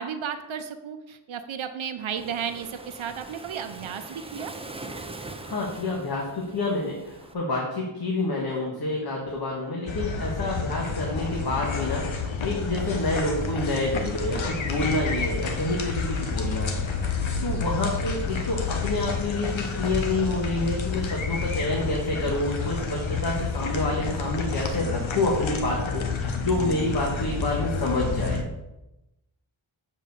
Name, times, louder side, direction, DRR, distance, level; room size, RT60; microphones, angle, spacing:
voice 1, 0.0-4.5 26.3-26.4, right 7 dB, 75° right, 8 dB, 0.7 m, -33 dB
Waves surf, 2.2-7.3, right 2 dB, 15° right, 0.5 m, -42 dB
voice 2, 5.4-16.9 17.4-28.4, left 2 dB, 50° left, -2 dB, 1.5 m, -28 dB
sound 1, 9.9-28.4, left 4 dB, 70° left, 1.1 m, -29 dB
7.4 x 4.4 x 6.9 m, 0.96 s
wide cardioid pair, 170°, 48 cm